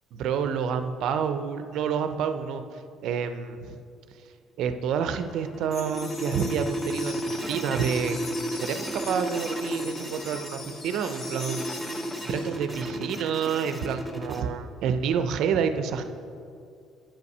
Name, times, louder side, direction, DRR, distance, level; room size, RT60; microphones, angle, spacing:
voice 1, 0.1-3.8 4.1-4.3 4.6-8.2 8.5-12.0 12.2-16.0, right 7 dB, 55° right, 9 dB, 0.5 m, -29 dB
sound 1, 5.0-14.4, right 1 dB, ahead, 0.5 m, -33 dB
sound 2, 5.7-12.6, left 4 dB, 30° left, 0.7 m, -41 dB
8.7 x 5.5 x 5.4 m, 2.4 s
cardioid pair, 170°, 0 cm